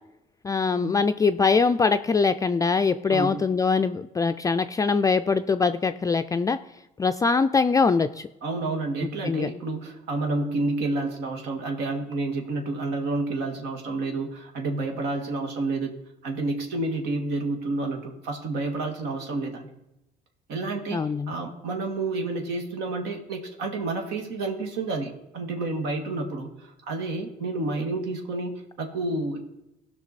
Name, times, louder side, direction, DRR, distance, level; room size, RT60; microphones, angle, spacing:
voice 1, 0.4-6.6 7.0-8.3 9.2-9.5 20.9-21.3, left 4 dB, 20° left, 8 dB, 0.3 m, -23 dB
voice 2, 3.1-3.4 8.4-15.9 16.2-19.7 20.5-29.4, right 2 dB, 90° right, 3 dB, 1.8 m, -30 dB
16.5 x 5.9 x 4.1 m, 0.92 s
cardioid pair, 110°, 17 cm